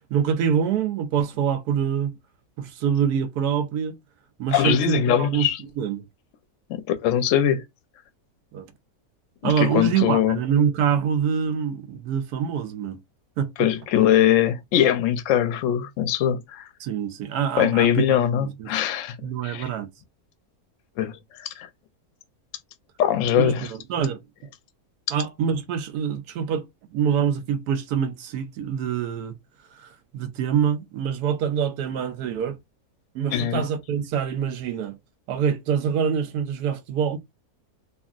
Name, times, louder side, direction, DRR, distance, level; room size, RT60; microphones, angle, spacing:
voice 1, 0.1-2.1 2.6-4.0 4.4-5.5 5.8-6.0 8.5-8.7 9.4-13.0 13.4-13.5 16.8-18.7 19.2-19.9 23.4-24.2 25.1-26.7 26.9-29.3 29.8-32.6 33.1-35.0 35.3-37.2, right 8 dB, 90° right, 1.2 m, -25 dB
voice 2, 4.5-5.6 6.7-7.6 9.4-10.4 13.6-16.6 17.6-19.1 19.4-19.6 21.0-21.7 23.0-23.7 33.3-33.6, left 10 dB, 65° left, 0.8 m, -21 dB
3.0 x 2.6 x 2.4 m
omnidirectional pair, 1.6 m